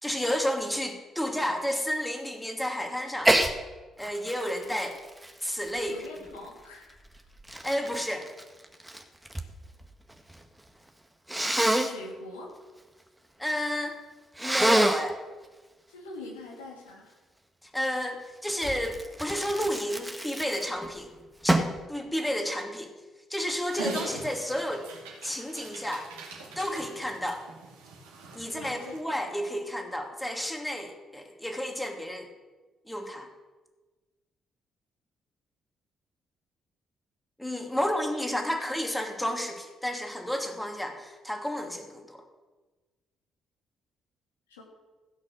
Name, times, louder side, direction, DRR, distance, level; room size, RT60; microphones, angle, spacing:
voice 1, 0.0-3.3 4.0-5.0 5.4-5.9 7.5-8.3 13.4-14.0 14.4-15.2 17.6-21.1 21.4-22.9 23.3-24.9 25.2-26.1 26.6-27.4 28.3-32.3 32.9-33.3 37.4-42.2, equal, 5° left, 3 dB, 2.6 m, -31 dB
Sneeze, 3.2-3.5 4.0-6.4 7.1-9.5 9.8-10.4 11.3-11.9 14.4-15.1 18.6-20.9 21.5-21.8, right 1 dB, 10° right, 1.5 m, -27 dB
voice 2, 5.8-6.9 11.5-12.5 15.9-17.2 28.4-29.0 38.5-38.6 44.5-44.6, left 2 dB, 80° left, -1 dB, 2.4 m, -44 dB
Dog, 23.6-29.0, right 3 dB, 75° right, 2.5 m, -41 dB
16.0 x 6.3 x 6.5 m, 1.3 s
figure-of-eight pair, 45°, 0 cm